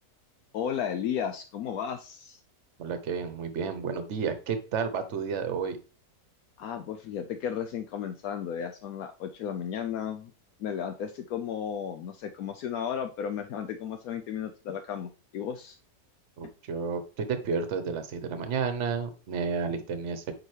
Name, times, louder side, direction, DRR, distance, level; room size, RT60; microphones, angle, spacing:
voice 1, 0.5-2.4 6.6-10.3 10.6-15.8, left 8 dB, 75° left, 7 dB, 1.1 m, -34 dB
voice 2, 2.8-5.8 16.4-20.3, right 5 dB, 55° right, 10 dB, 1.1 m, -31 dB
8.8 x 4.8 x 3.2 m, 0.35 s
omnidirectional pair, 1.6 m